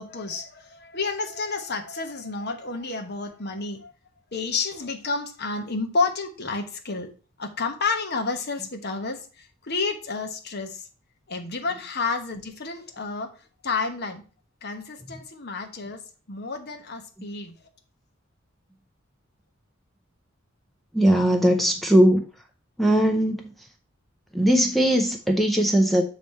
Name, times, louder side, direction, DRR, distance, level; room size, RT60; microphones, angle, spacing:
voice 1, 0.0-3.9 4.3-7.1 7.4-10.9 11.3-13.3 13.6-14.2 14.6-16.0 16.3-17.7, left 4 dB, 55° left, 5 dB, 1.1 m, -30 dB
voice 2, 20.9-22.2 22.8-23.4 24.3-26.0, right 1 dB, ahead, 3 dB, 0.6 m, -19 dB
7.3 x 3.2 x 5.2 m, 0.36 s
head